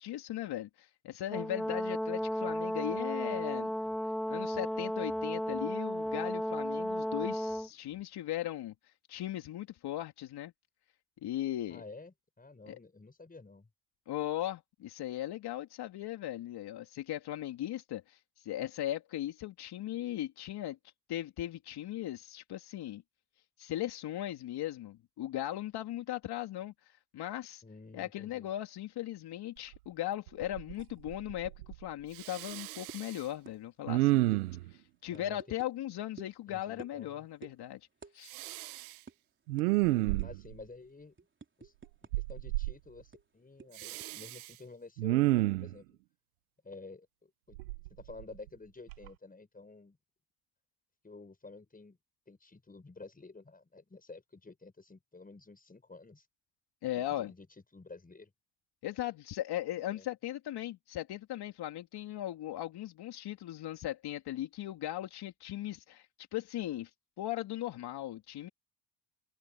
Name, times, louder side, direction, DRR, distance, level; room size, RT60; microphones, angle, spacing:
voice 1, 0.0-3.7 4.3-8.7 9.1-10.5 11.2-11.8 12.7-12.8 14.1-20.8 21.1-23.0 23.6-26.7 27.1-27.6 27.9-31.5 31.8-34.2 34.7-37.8 38.1-38.3 56.8-57.3 58.8-66.1 66.3-66.9 67.2-68.5, left 13 dB, 60° left, 3.0 m, -38 dB
Brass instrument, 1.3-7.7, equal, ahead, 0.8 m, -34 dB
voice 2, 11.7-13.7 27.6-28.5 35.1-35.4 36.5-37.3 40.2-41.1 41.6-41.7 42.0-45.3 45.6-46.0 46.6-47.6 47.9-50.0 51.0-52.0 52.3-56.3 56.9-57.5 57.7-58.3 59.8-60.1, left 3 dB, 20° left, 6.3 m, -51 dB
Respiratory sounds, 29.7-29.8 30.3-30.8 31.1-31.8 32.2-33.2 33.9-34.7 38.3-38.9 39.5-40.6 42.1-42.7 43.8-44.5 45.0-45.7 47.6-48.5 48.9-49.1, right 19 dB, 90° right, 1.0 m, -31 dB
sound 1, 32.9-33.1 33.5-33.6 33.8-34.0 34.3-34.4 35.1-35.7 36.2-36.4 36.8-37.1 37.4-37.6 38.0-38.2 38.4-38.6 39.1-39.2 39.6-39.7 40.2-40.5 40.9-42.3 42.6-42.7 43.1-44.1, right 4 dB, 25° right, 3.6 m, -51 dB
hypercardioid pair, 65°, 43 cm